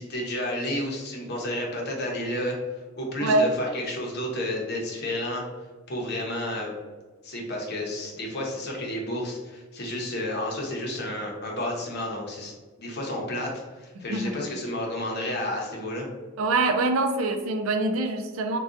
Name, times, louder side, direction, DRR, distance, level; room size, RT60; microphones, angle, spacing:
voice 1, 0.0-2.6 2.9-5.4 5.9-6.7 7.2-12.5 12.8-16.1, left 1 dB, 55° left, -1 dB, 0.7 m, -31 dB
voice 2, 16.4-18.6, right 2 dB, 80° right, 6 dB, 0.4 m, -24 dB
3.6 x 2.3 x 2.5 m, 1.4 s
head